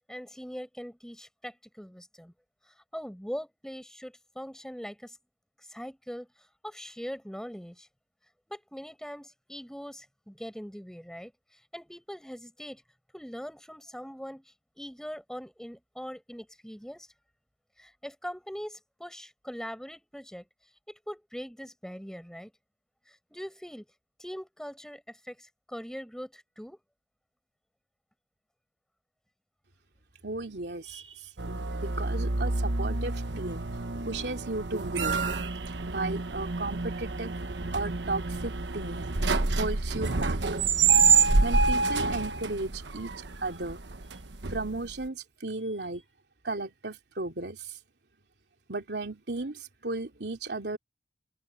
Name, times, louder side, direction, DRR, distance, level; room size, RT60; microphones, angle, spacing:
voice 1, 0.1-2.3 2.7-5.2 5.6-7.9 8.5-12.8 13.1-17.1 17.8-20.5 20.9-22.5 23.1-23.8 24.2-26.8, equal, 5° left, 7.6 m, -42 dB
voice 2, 30.2-33.7 34.0-35.4 35.7-39.1 39.6-40.4 41.4-43.8 44.5-46.0 46.4-47.8 48.7-50.8, right 2 dB, 75° right, 2.9 m, -35 dB
sound 1, 31.4-45.0, right 4 dB, 90° right, 1.2 m, -28 dB
open air
head